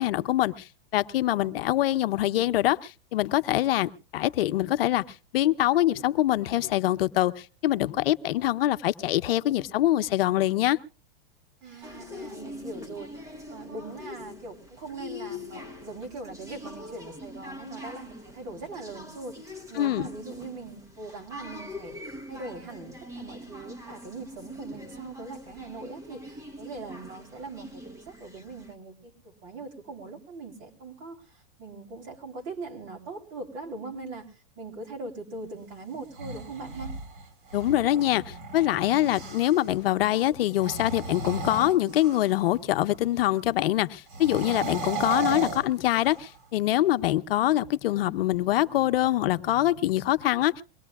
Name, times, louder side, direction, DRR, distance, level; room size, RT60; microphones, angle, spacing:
voice 1, 0.0-5.0 5.3-10.8 19.8-20.1 37.5-50.6, left 14 dB, 75° left, 12 dB, 0.8 m, -24 dB
voice 2, 11.6-13.1 13.5-22.0 22.3-36.9, right 3 dB, 45° right, 3 dB, 3.6 m, -41 dB
sound 1, 11.8-28.7, left 1 dB, 10° right, 1.1 m, -43 dB
sound 2, 36.0-39.7 40.5-42.5 44.1-46.4, right 4 dB, 65° right, 3.9 m, -35 dB
23.0 x 18.5 x 2.3 m, 0.35 s
supercardioid pair, 145°, 29 cm